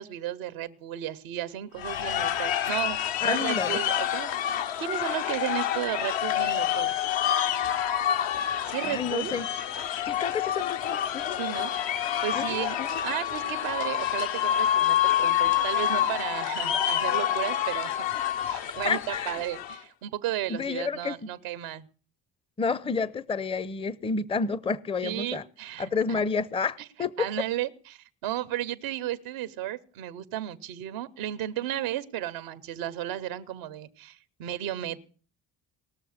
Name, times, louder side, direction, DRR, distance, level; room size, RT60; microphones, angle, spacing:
voice 1, 0.0-3.0 3.2-4.4 4.8-6.9 8.6-9.3 11.4-11.7 12.2-12.8 13.0-18.1 18.4-21.9 25.0-26.2 26.8-26.9 27.2-35.0, right 12 dB, 80° right, 0.8 m, -34 dB
sound 1, 1.8-19.8, left 11 dB, 65° left, 0.8 m, -28 dB
voice 2, 3.2-3.8 8.8-9.5 10.0-11.4 12.3-13.0 18.8-19.4 20.5-21.2 22.6-25.4 25.8-27.3, left 5 dB, 10° left, 0.5 m, -30 dB
19.0 x 6.7 x 6.4 m
hypercardioid pair, 55°, 48 cm